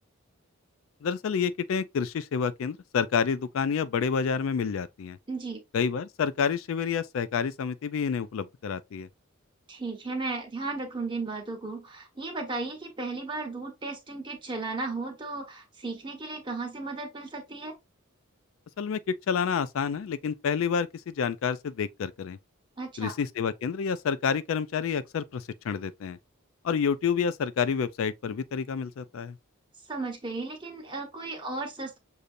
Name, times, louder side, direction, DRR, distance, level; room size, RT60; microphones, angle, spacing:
voice 1, 1.0-5.2 5.7-9.1 18.8-22.4 23.0-26.2 26.6-29.3, left 6 dB, 65° left, 0.3 m, -29 dB
voice 2, 5.3-5.6 9.7-17.7 22.8-23.1 29.9-32.0, right 3 dB, 20° right, 1.2 m, -35 dB
6.6 x 2.7 x 2.5 m
head